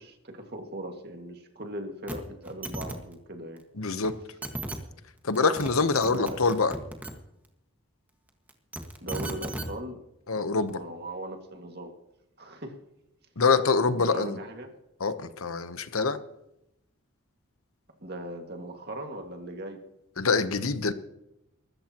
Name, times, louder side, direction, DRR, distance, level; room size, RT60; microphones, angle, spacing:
voice 1, 0.0-3.6 6.0-6.6 9.0-10.0 10.7-11.9 12.4-12.7 13.9-14.7 18.0-19.8, right 1 dB, 45° right, 3 dB, 2.1 m, -39 dB
sound 1, 2.1-2.2 2.4-2.9 4.0-4.1 4.4-4.8 5.4-5.7 6.0-7.1 8.5-9.7 10.7-10.8, right 1 dB, 10° right, 1.7 m, -35 dB
voice 2, 3.8-4.1 5.2-6.7 10.3-10.8 13.4-14.4 15.0-16.2 20.2-20.9, left 4 dB, 80° left, 11 dB, 1.0 m, -25 dB
23.5 x 13.5 x 3.0 m, 0.85 s
head